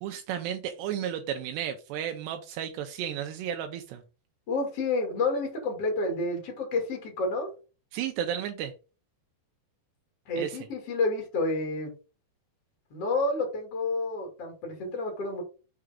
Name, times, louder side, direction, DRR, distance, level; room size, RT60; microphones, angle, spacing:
voice 1, 0.0-4.0 7.9-8.7 10.4-10.6, right 9 dB, 85° right, 6 dB, 2.7 m, -33 dB
voice 2, 4.5-7.5 10.3-11.9 12.9-15.4, left 2 dB, 40° left, 1 dB, 2.8 m, -29 dB
6.7 x 4.9 x 5.1 m, 0.33 s
omnidirectional pair, 5.3 m